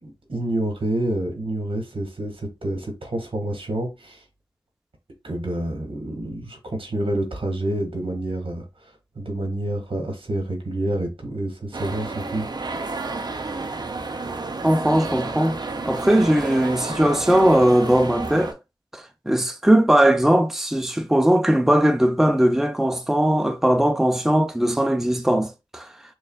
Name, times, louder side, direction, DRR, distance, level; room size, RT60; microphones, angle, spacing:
voice 1, 0.0-4.2 5.2-8.7 9.1-12.5, right 1 dB, 80° right, 1.4 m, -28 dB
sound 1, 11.7-18.5, right 3 dB, 50° right, 0.6 m, -31 dB
voice 2, 14.6-15.6 15.9-18.5 18.9-25.9, right 1 dB, 5° right, 0.5 m, -19 dB
6.5 x 2.3 x 2.3 m
wide cardioid pair, 60°, 9 cm